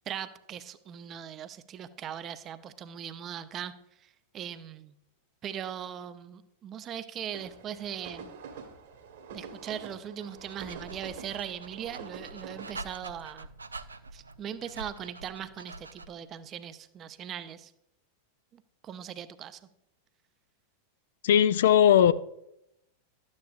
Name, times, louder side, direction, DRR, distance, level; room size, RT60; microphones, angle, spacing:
voice 1, 0.1-3.7 4.0-4.9 5.4-8.3 9.3-13.5 14.1-17.7 18.5-19.6, right 9 dB, 35° right, 0.6 m, -40 dB
sound 1, 7.3-12.8, right 5 dB, 60° right, 1.7 m, -46 dB
Dog, 10.2-16.3, right 3 dB, 85° right, 0.4 m, -46 dB
voice 2, 21.2-22.1, left 9 dB, 65° left, 0.3 m, -19 dB
12.5 x 9.6 x 2.5 m
figure-of-eight pair, 90°, 0 cm